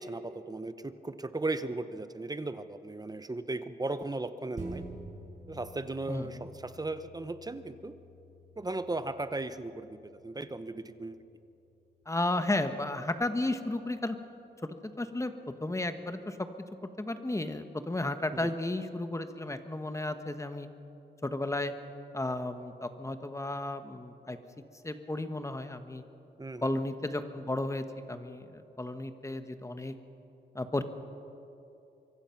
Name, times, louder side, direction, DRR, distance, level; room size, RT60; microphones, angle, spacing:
voice 1, 0.0-4.8 5.5-7.9 8.6-11.2 18.3-18.5 26.4-26.7, right 2 dB, 20° right, 11 dB, 0.8 m, -36 dB
sound 1, 4.6-13.4 13.8-13.9, right 1 dB, 40° right, 6.7 m, -50 dB
voice 2, 6.1-6.5 12.1-14.2 14.6-15.3 15.6-16.4 17.0-20.7 21.2-21.7 22.1-24.4 24.8-26.0 26.6-29.9 30.5-30.8, left 2 dB, 15° left, 9 dB, 1.2 m, -33 dB
24.5 x 23.5 x 5.8 m, 2.8 s
wide cardioid pair, 135°, 19 cm